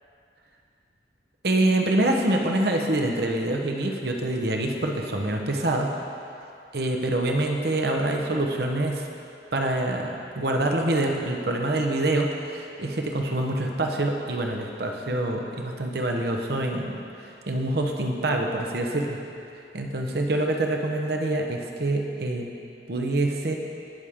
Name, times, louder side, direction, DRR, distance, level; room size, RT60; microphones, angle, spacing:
voice 1, 1.4-6.0 6.7-9.1 9.5-17.0 17.5-19.2 19.7-22.5 22.9-23.6, right 1 dB, 55° right, 2 dB, 1.0 m, -25 dB
18.5 x 6.3 x 3.6 m, 2.6 s
head